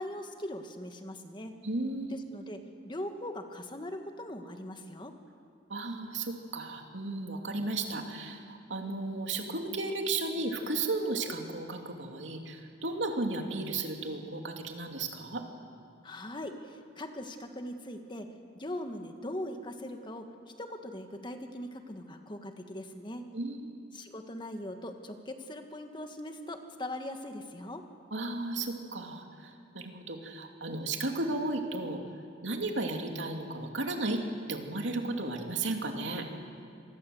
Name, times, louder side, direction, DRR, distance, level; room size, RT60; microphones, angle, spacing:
voice 1, 0.0-1.5 2.0-5.1 16.0-18.3 18.5-20.3 20.6-23.2 23.9-27.8, left 1 dB, 25° left, 6 dB, 1.6 m, -40 dB
voice 2, 1.6-2.1 5.7-15.4 23.3-23.9 28.1-32.0 32.4-34.2 34.5-36.3, right 2 dB, 85° right, 3 dB, 2.8 m, -34 dB
26.5 x 20.0 x 7.8 m, 2.4 s
head